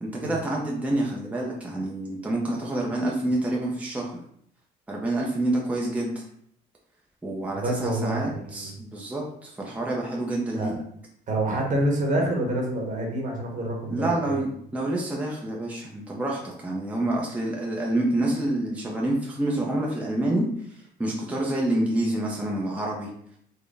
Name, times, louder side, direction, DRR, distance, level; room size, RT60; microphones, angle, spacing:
voice 1, 0.0-4.2 4.9-6.1 7.2-10.8 13.9-20.4 21.0-23.1, right 1 dB, 10° right, -2 dB, 0.6 m, -27 dB
voice 2, 7.5-8.7 10.5-10.8 11.3-14.4, right 1 dB, 50° right, 1 dB, 1.1 m, -27 dB
4.1 x 2.1 x 3.3 m, 0.67 s
cardioid pair, 110°, 17 cm